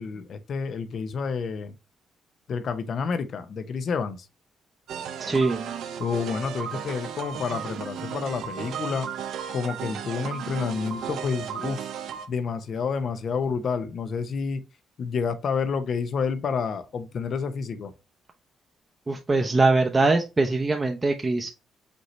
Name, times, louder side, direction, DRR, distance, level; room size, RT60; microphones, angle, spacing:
voice 1, 0.0-1.7 2.5-4.3 6.0-9.1 9.5-11.9 12.3-14.6 15.0-17.9, left 5 dB, 55° left, 0.7 m, -29 dB
sound 1, 4.9-12.3, right 8 dB, 75° right, 0.8 m, -35 dB
voice 2, 5.2-5.7 19.1-21.5, right 3 dB, 25° right, 0.7 m, -22 dB
5.2 x 3.0 x 3.0 m
cardioid pair, 90°, 0 cm